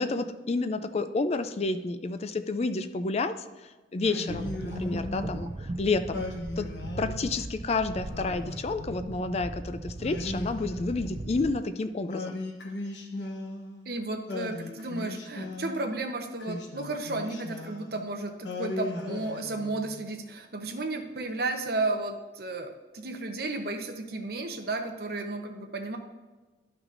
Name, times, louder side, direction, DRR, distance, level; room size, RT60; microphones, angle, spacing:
voice 1, 0.0-6.3 6.6-6.7 7.0-12.4, left 3 dB, 35° left, 10 dB, 0.4 m, -30 dB
Singing, 4.0-5.5 6.1-7.5 8.1-9.4 10.0-11.5 12.1-13.9 14.3-15.9 16.4-18.0 18.4-20.1, left 2 dB, 80° left, 1.1 m, -38 dB
sound 1, 4.3-11.6, right 2 dB, 30° right, 0.4 m, -39 dB
voice 2, 13.9-26.0, right 2 dB, 60° right, 5 dB, 0.9 m, -33 dB
12.5 x 5.9 x 2.6 m, 1.3 s
head